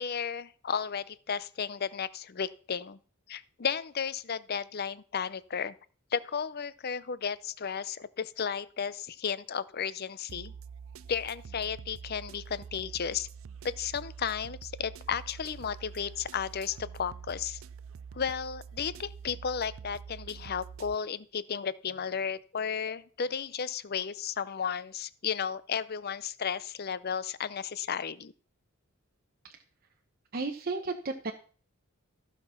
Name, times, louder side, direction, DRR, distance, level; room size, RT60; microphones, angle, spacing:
voice 1, 0.0-3.0 3.3-5.7 6.1-10.5 11.1-13.3 13.6-17.6 18.1-28.3, left 7 dB, 50° left, 17 dB, 0.6 m, -34 dB
sound 1, 10.3-21.0, right 6 dB, 70° right, 0.4 m, -46 dB
voice 2, 30.3-31.3, right 3 dB, 45° right, 3 dB, 0.9 m, -33 dB
14.5 x 5.9 x 5.7 m, 0.42 s
head